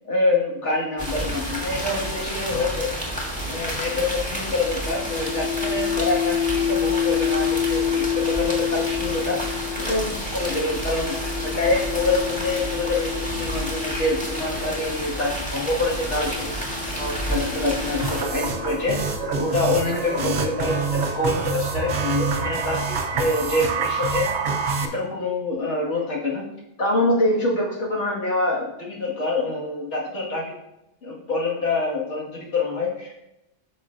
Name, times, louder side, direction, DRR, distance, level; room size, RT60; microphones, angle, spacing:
voice 1, 0.0-2.9 3.5-16.6 16.9-24.4 24.8-26.4 26.8-30.6 31.0-33.1, left 2 dB, 70° left, -3 dB, 2.1 m, -26 dB
sound 1, 1.0-18.2, equal, 5° left, 1.6 m, -30 dB
sound 2, 4.8-15.2 16.1-19.8, left 8 dB, 30° left, 0.9 m, -29 dB
sound 3, 18.0-24.9, right 5 dB, 65° right, 1.0 m, -26 dB
9.3 x 6.6 x 2.5 m, 0.87 s
omnidirectional pair, 1.2 m